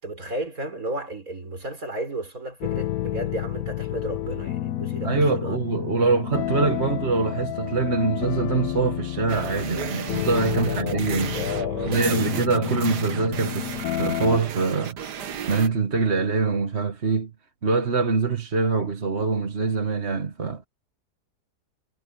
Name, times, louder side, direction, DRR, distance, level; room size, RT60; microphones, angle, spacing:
voice 1, 0.0-5.6 10.5-12.3, right 1 dB, 55° right, 5.1 m, -33 dB
sound 1, 2.6-14.4, left 13 dB, 70° left, 1.0 m, -30 dB
voice 2, 5.0-11.4 11.9-15.0 15.5-17.3 17.6-20.7, right 4 dB, 40° right, 1.8 m, -24 dB
sound 2, 9.3-15.7, right 7 dB, 80° right, 1.9 m, -35 dB
omnidirectional pair, 1.7 m